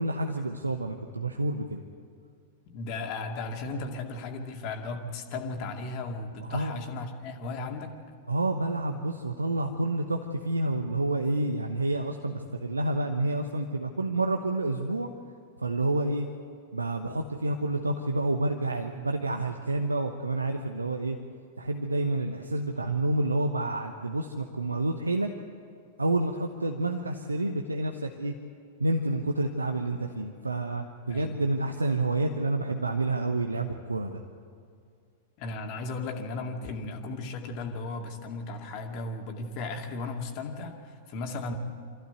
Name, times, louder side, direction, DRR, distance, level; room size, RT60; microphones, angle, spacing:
voice 1, 0.0-1.8 6.4-6.7 8.3-15.1 15.6-16.3 16.7-21.2 21.6-25.3 26.0-28.3 28.8-34.2, right 2 dB, 80° right, 4 dB, 1.0 m, -29 dB
voice 2, 2.7-7.9 31.1-31.4 35.4-41.5, left 3 dB, 40° left, 3 dB, 2.3 m, -36 dB
25.0 x 15.0 x 8.1 m, 2.2 s
figure-of-eight pair, 95°, 0 cm